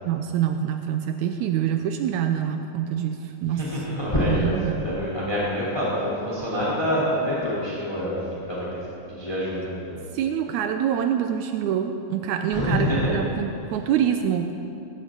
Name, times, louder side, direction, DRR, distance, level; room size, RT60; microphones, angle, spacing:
voice 1, 0.1-3.9 4.3-4.8 10.1-14.5, right 9 dB, 80° right, 6 dB, 2.0 m, -26 dB
voice 2, 3.5-8.2 8.5-8.8 9.1-10.0 12.5-13.2, equal, 10° left, -7 dB, 3.1 m, -26 dB
20.0 x 16.0 x 3.9 m, 2.8 s
omnidirectional pair, 3.5 m